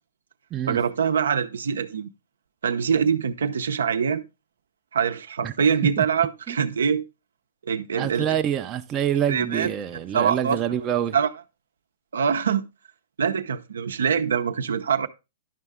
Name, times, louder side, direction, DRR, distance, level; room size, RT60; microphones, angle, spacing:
voice 1, 0.7-2.1 2.6-4.2 4.9-7.0 7.7-8.4 9.3-9.7 10.1-10.6 11.1-11.3 12.1-12.7 13.2-15.1, right 7 dB, 80° right, 0.7 m, -24 dB
voice 2, 8.0-11.2, right 10 dB, 25° right, 0.6 m, -26 dB
11.0 x 5.5 x 3.6 m
hypercardioid pair, 130°, 0 cm